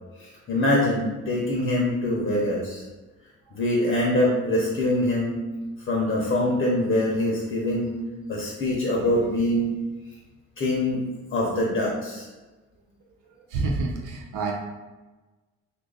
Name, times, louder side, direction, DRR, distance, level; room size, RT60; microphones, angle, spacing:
voice 1, 0.2-2.8 3.5-5.4 5.9-8.0 8.3-9.7 10.6-11.1 11.3-12.3, left 1 dB, 40° left, -3 dB, 0.8 m, -24 dB
voice 2, 13.3-14.5, right 3 dB, 85° right, -1 dB, 0.6 m, -28 dB
2.8 x 2.5 x 3.8 m, 1.2 s
cardioid pair, 90°, 30 cm